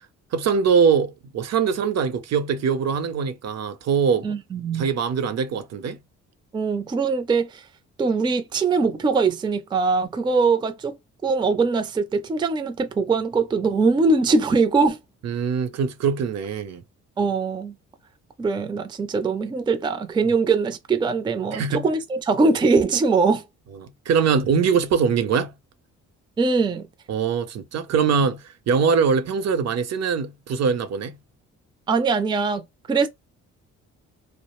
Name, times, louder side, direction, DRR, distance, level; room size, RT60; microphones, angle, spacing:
voice 1, 0.3-4.4 4.7-6.0 15.2-16.8 21.5-21.9 23.8-25.5 27.1-31.2, right 6 dB, 60° right, 0.6 m, -22 dB
voice 2, 4.2-4.9 6.5-7.7 8.0-11.0 11.2-15.0 17.2-17.7 18.4-23.4 26.4-26.9 31.9-32.6 32.9-33.1, right 4 dB, 15° right, 0.4 m, -22 dB
2.3 x 2.0 x 3.0 m
cardioid pair, 90°, 30 cm